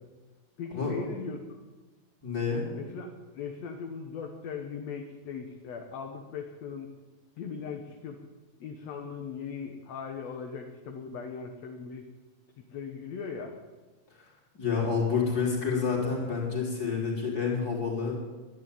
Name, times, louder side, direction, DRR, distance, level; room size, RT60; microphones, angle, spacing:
voice 1, 0.6-1.4 2.8-3.1 3.4-6.9 7.4-8.2 8.6-12.0 12.6-13.6, left 6 dB, 65° left, 3 dB, 2.3 m, -39 dB
voice 2, 2.2-2.6 14.5-18.1, left 5 dB, 30° left, -2 dB, 4.2 m, -28 dB
12.5 x 10.5 x 9.2 m, 1.2 s
omnidirectional pair, 3.5 m